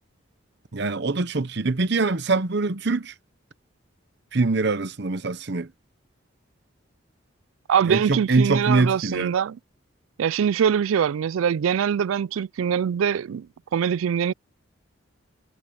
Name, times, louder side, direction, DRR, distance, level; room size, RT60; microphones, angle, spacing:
voice 1, 0.7-3.1 4.3-5.7 7.9-9.3, right 3 dB, 55° right, 0.8 m, -23 dB
voice 2, 7.7-9.6 10.2-13.5 13.7-14.3, right 8 dB, 80° right, 0.3 m, -23 dB
head